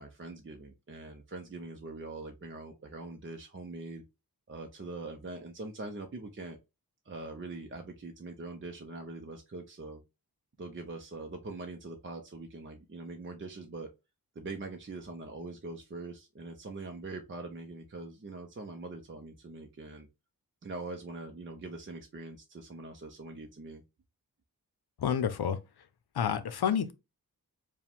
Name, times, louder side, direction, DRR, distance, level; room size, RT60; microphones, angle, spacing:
voice 1, 0.0-4.0 4.5-6.6 7.1-10.0 10.6-13.9 14.4-20.1 20.6-23.8, right 3 dB, 30° right, 0.6 m, -43 dB
voice 2, 25.0-25.6 26.1-26.9, left 8 dB, 80° left, 0.6 m, -29 dB
4.8 x 2.3 x 3.5 m
wide cardioid pair, 80°, 38 cm